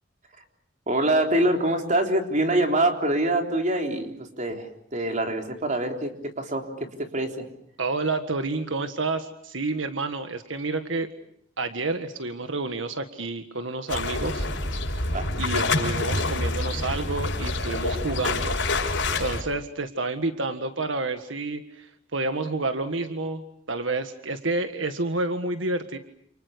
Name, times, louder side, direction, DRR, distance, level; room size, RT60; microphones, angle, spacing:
voice 1, 0.9-7.5 15.1-15.3, right 1 dB, 40° right, 3 dB, 3.8 m, -25 dB
voice 2, 7.8-11.1 11.6-14.5 15.4-18.6 19.2-23.4 23.7-26.0, right 3 dB, 85° right, 8 dB, 1.7 m, -29 dB
sound 1, 13.9-19.4, left 2 dB, 75° left, 6.2 m, -27 dB
29.5 x 28.5 x 6.8 m, 0.70 s
head